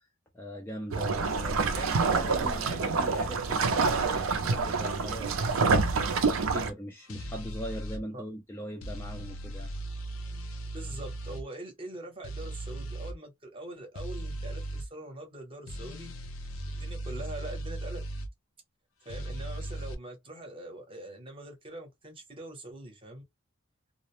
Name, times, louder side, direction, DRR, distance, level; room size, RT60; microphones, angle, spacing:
voice 1, 0.3-5.5 6.5-9.7, equal, 10° left, 0.4 m, -41 dB
sound 1, 0.9-6.7, right 4 dB, 75° right, 0.5 m, -27 dB
sound 2, 7.1-8.0 8.8-11.4 12.2-13.1 13.9-14.9 15.7-18.3 19.1-19.9, right 1 dB, 75° left, 0.5 m, -37 dB
voice 2, 10.7-16.1 16.7-18.0 19.0-23.2, right 1 dB, 25° right, 0.8 m, -43 dB
2.4 x 2.0 x 2.9 m
head